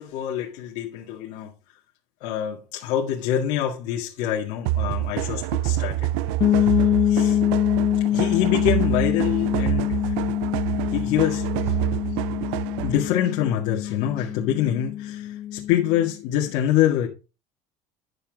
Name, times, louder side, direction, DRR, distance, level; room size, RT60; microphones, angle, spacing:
voice 1, 0.0-1.5 2.2-6.7 7.0-7.4 8.1-10.3 10.9-11.8 12.8-17.1, left 11 dB, 60° left, 1.9 m, -26 dB
sound 1, 4.7-13.1, right 15 dB, 80° right, 0.4 m, -27 dB
sound 2, 6.4-16.1, left 12 dB, 30° left, 0.5 m, -25 dB
10.0 x 7.0 x 3.6 m
cardioid pair, 180°, 14 cm